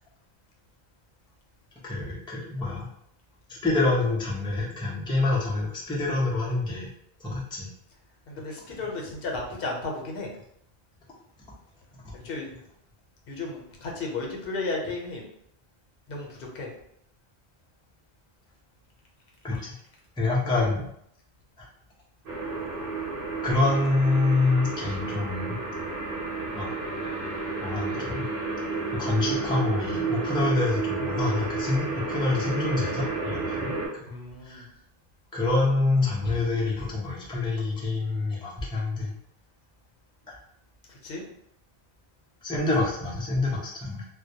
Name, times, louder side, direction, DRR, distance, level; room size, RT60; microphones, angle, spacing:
voice 1, 1.8-2.9 3.5-6.9 7.2-7.7 11.9-12.3 19.4-19.7 20.2-20.8 21.6-21.7 23.4-25.6 26.6-26.7 27.6-28.3 28.9-33.7 34.4-34.6 35.3-39.1 40.3-40.4 42.4-44.1, left 2 dB, 10° left, -5 dB, 0.3 m, -26 dB
voice 2, 8.3-10.3 12.2-12.5 13.3-15.2 16.1-16.7 34.1-34.6 41.0-41.2, left 3 dB, 70° left, -1 dB, 0.8 m, -34 dB
sound 1, 22.3-33.9, right 3 dB, 60° right, 0.9 m, -31 dB
2.2 x 2.1 x 2.7 m, 0.72 s
omnidirectional pair, 1.1 m